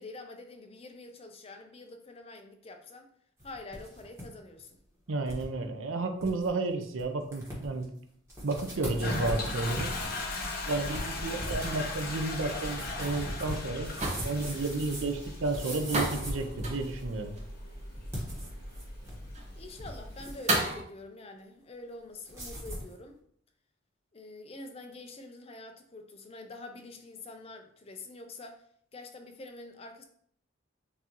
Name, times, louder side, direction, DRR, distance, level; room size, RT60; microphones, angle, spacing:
voice 1, 0.0-3.1 3.4-4.8 19.5-23.2 24.1-28.6 28.9-30.0, left 2 dB, 30° left, 5 dB, 0.5 m, -46 dB
sound 1, 3.4-4.3 4.6-4.7 5.3-5.5 5.9-6.0 6.2-6.5 7.0-7.1 7.3-7.8 8.3-17.1 18.0-19.3 19.6-20.5 22.3-22.9, equal, 15° right, 1.3 m, -40 dB
voice 2, 5.1-7.9 8.4-9.9 10.7-13.9 14.2-17.3, right 3 dB, 85° right, 6 dB, 0.6 m, -32 dB
Toilet flush, 8.9-20.3, left 2 dB, 50° left, 0.9 m, -38 dB
sound 2, 12.3-20.8, right 2 dB, 35° right, 0.7 m, -36 dB
6.7 x 2.7 x 2.9 m, 0.66 s
head